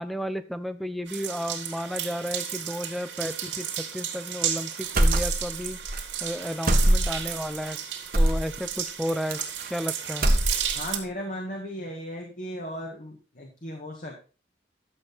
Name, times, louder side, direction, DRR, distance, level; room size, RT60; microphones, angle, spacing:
voice 1, 0.0-5.8 6.2-7.8 8.1-9.4 9.7-10.3, equal, ahead, 11 dB, 0.7 m, -32 dB
sound 1, 1.1-11.0, right 9 dB, 85° right, 2.9 m, -33 dB
sound 2, 5.0-5.6 5.9-6.0 6.7-7.3 8.1-8.5 9.3-9.9 10.1-10.9, right 1 dB, 50° right, 1.7 m, -22 dB
voice 2, 10.8-14.2, equal, 45° left, 1 dB, 1.8 m, -36 dB
12.0 x 8.0 x 4.2 m, 0.35 s
head